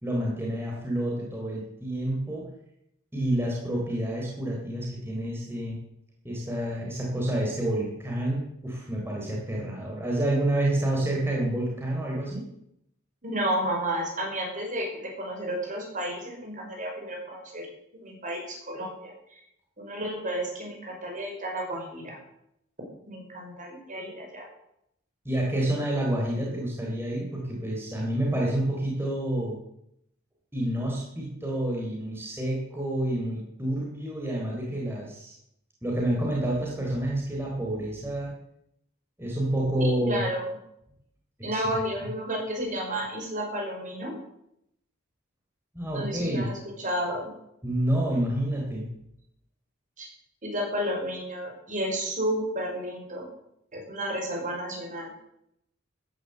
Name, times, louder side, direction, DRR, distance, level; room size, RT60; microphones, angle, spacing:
voice 1, 0.0-2.4 3.1-5.8 6.2-12.4 25.2-29.6 30.5-35.3 35.8-38.3 39.2-40.2 41.5-41.6 45.7-46.5 47.6-48.9, right 1 dB, 10° right, -2 dB, 3.8 m, -28 dB
voice 2, 13.2-19.1 19.8-22.2 23.1-24.5 39.8-40.5 41.4-44.1 45.9-47.3 50.0-50.1 50.4-53.3 53.7-55.1, right 1 dB, 40° right, 0 dB, 5.6 m, -32 dB
14.5 x 10.5 x 8.0 m, 0.77 s
head